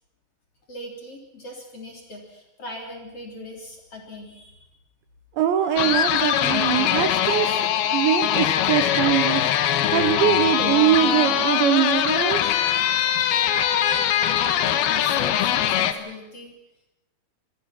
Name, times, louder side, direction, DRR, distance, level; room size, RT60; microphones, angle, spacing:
voice 1, 0.7-4.7 13.3-16.5, left 1 dB, 30° left, 1 dB, 3.8 m, -39 dB
voice 2, 5.4-7.6 7.9-9.5 9.9-12.6, right 11 dB, 70° right, 8 dB, 3.1 m, -22 dB
sound 1, 5.8-15.9, left 10 dB, 75° left, 2.4 m, -22 dB
27.0 x 21.5 x 6.1 m, 0.97 s
omnidirectional pair, 6.0 m